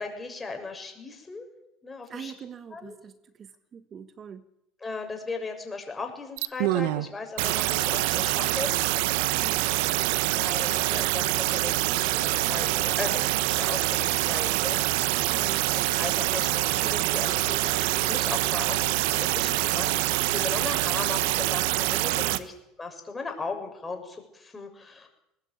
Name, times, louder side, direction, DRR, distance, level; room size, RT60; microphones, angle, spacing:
voice 1, 0.0-1.5 1.8-2.3 2.7-3.0 4.8-8.7 10.3-15.1 15.4-25.1, left 4 dB, 20° left, 4 dB, 6.6 m, -37 dB
voice 2, 2.1-4.5 9.3-9.7 15.3-15.7 22.3-22.5, right 7 dB, 40° right, 11 dB, 1.4 m, -43 dB
sound 1, 6.4-7.1 7.4-22.4, right 17 dB, 75° right, 1.1 m, -25 dB
20.5 x 20.0 x 8.7 m, 0.83 s
supercardioid pair, 90°, 0 cm